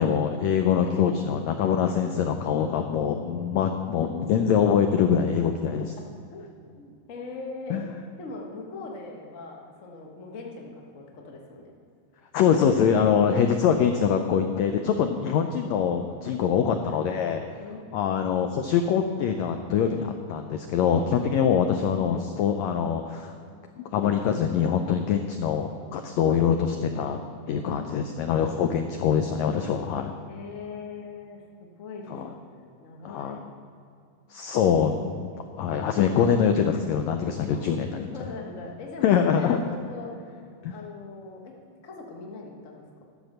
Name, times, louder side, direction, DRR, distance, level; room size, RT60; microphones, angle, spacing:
voice 1, 0.0-5.9 7.7-7.8 12.3-17.4 17.9-23.3 23.9-27.2 27.5-30.1 32.1-32.3 33.0-33.4 34.3-35.3 35.6-38.1 39.0-39.6 40.6-40.7, left 7 dB, 85° left, 6 dB, 1.5 m, -24 dB
voice 2, 6.7-7.8 8.2-11.7 17.6-17.8 21.4-22.0 30.3-33.4 34.6-34.9 36.1-36.4 37.5-37.6 38.0-41.6 41.8-43.0, left 3 dB, 60° left, -1 dB, 0.7 m, -41 dB
12.0 x 6.3 x 6.5 m, 2.4 s
omnidirectional pair, 3.8 m